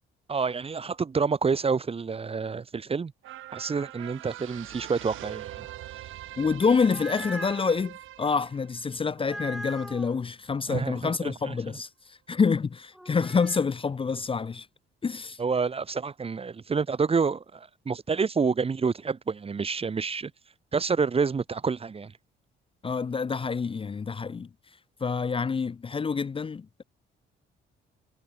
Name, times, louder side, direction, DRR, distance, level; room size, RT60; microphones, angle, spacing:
voice 1, 0.3-3.1 3.5-5.7 10.7-11.5 15.4-20.3 20.7-22.1, right 5 dB, 30° right, 1.0 m, -28 dB
sound 1, 3.2-9.9 10.3-10.4, right 14 dB, 85° right, 4.9 m, -43 dB
voice 2, 6.4-14.7 15.0-15.4 22.8-24.5 25.0-26.8, left 5 dB, 25° left, 0.6 m, -27 dB
sound 2, 6.6-7.8 9.2-10.1 12.9-13.7, equal, ahead, 2.5 m, -40 dB
cardioid pair, 90°, 20 cm